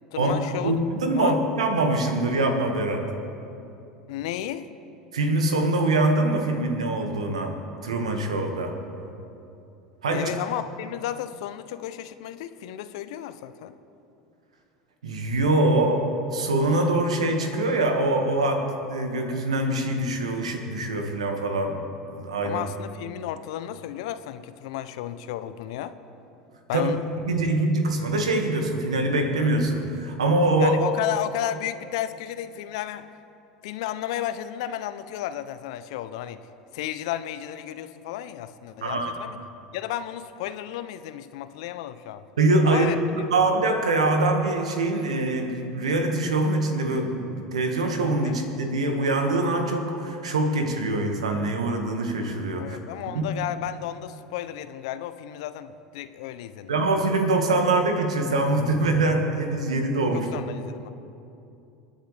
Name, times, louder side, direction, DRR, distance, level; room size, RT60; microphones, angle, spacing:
voice 1, 0.1-0.8 1.1-1.4 4.1-4.7 10.1-13.7 22.4-26.0 26.7-27.0 30.6-33.1 33.6-36.4 36.7-39.4 39.7-42.2 42.6-43.0 48.2-48.4 52.6-56.7 60.1-60.9, left 12 dB, 65° left, 12 dB, 0.7 m, -33 dB
voice 2, 0.6-3.1 5.1-7.5 7.8-8.8 10.0-10.3 15.0-21.7 22.1-22.6 26.7-26.9 27.3-30.8 38.8-39.1 42.4-42.9 43.3-52.8 53.1-53.2 56.7-60.3, right 2 dB, 85° right, 4 dB, 1.8 m, -24 dB
28.0 x 10.5 x 3.4 m, 2.7 s
hypercardioid pair, 80°, 3 cm